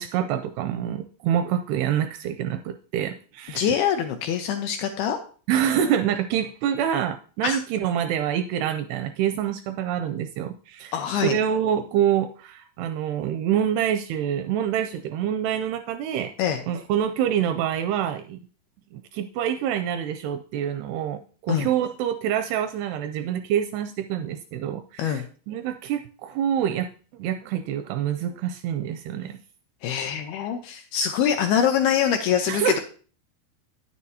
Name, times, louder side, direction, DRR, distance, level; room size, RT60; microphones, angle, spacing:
voice 1, 0.0-3.7 5.5-10.9 11.2-16.3 16.7-18.4 18.9-26.9 27.1-29.4 32.5-32.8, right 9 dB, 85° right, 8 dB, 2.3 m, -26 dB
voice 2, 3.5-5.2 7.4-7.6 10.9-11.4 16.4-16.6 21.5-21.7 25.0-25.2 29.8-32.8, left 8 dB, 85° left, 6 dB, 2.3 m, -24 dB
9.8 x 9.2 x 2.7 m, 0.40 s
omnidirectional pair, 5.0 m